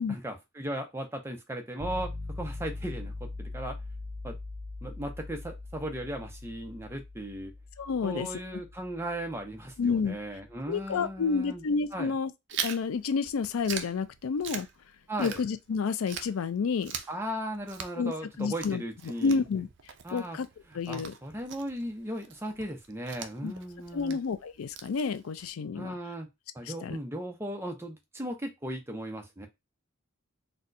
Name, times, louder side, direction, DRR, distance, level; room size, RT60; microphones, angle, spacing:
voice 1, 0.0-3.1 3.4-3.8 4.2-4.4 4.8-7.5 8.0-11.6 11.9-12.1 15.1-15.4 17.1-19.4 20.0-20.4 20.7-24.2 25.7-26.3 26.5-29.5, right 1 dB, 10° right, 0.6 m, -37 dB
sound 1, 1.8-11.7, left 2 dB, 35° right, 2.2 m, -42 dB
voice 2, 7.8-8.3 9.8-10.2 10.7-12.3 12.6-14.7 15.2-16.9 18.0-18.1 18.4-18.8 19.2-19.7 20.1-20.5 20.7-21.1 23.4-23.5 23.9-25.9 26.8-27.0, left 5 dB, 85° left, 0.4 m, -29 dB
Chewing mastication, 12.5-15.8 16.1-25.5, right 8 dB, 60° right, 0.4 m, -42 dB
4.1 x 2.2 x 2.6 m
head